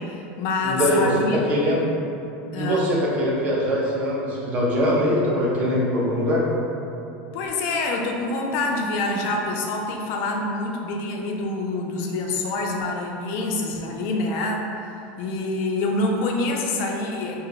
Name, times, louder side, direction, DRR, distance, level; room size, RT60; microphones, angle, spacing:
voice 1, 0.0-1.4 2.5-2.9 7.3-14.7 15.2-17.4, left 2 dB, 45° left, 1 dB, 0.4 m, -26 dB
voice 2, 0.6-1.1 1.5-1.8 2.5-6.5, equal, 25° right, -4 dB, 0.5 m, -22 dB
2.6 x 2.2 x 3.8 m, 2.8 s
supercardioid pair, 175°, 6 cm